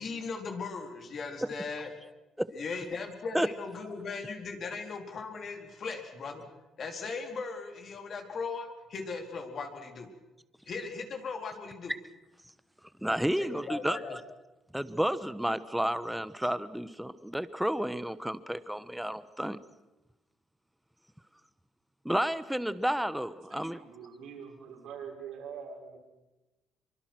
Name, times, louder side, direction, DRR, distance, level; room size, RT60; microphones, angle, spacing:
voice 1, 0.0-2.0 2.5-6.4 6.8-10.1 10.7-11.9 13.2-14.2, left 4 dB, 50° left, 4 dB, 4.1 m, -38 dB
voice 2, 13.0-14.0 14.7-19.6 22.0-23.8, equal, 5° right, 14 dB, 1.2 m, -31 dB
voice 3, 23.5-26.0, right 6 dB, 80° right, 0 dB, 6.3 m, -44 dB
25.0 x 24.0 x 6.2 m, 1.1 s
cardioid pair, 100°, 0 cm